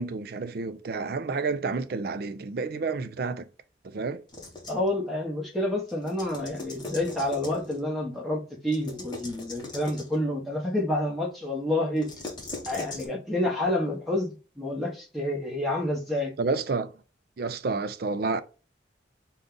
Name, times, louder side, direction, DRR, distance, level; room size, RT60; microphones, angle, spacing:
voice 1, 0.0-3.5 3.8-4.2 16.4-16.9 17.4-18.4, right 4 dB, 50° right, 0.4 m, -30 dB
sound 1, 4.3-4.9 5.9-7.8 8.7-10.2 12.0-13.1, left 2 dB, 20° left, 1.0 m, -40 dB
voice 2, 4.7-12.1 12.7-16.3, left 1 dB, ahead, 1.1 m, -29 dB
5.0 x 2.3 x 3.8 m
head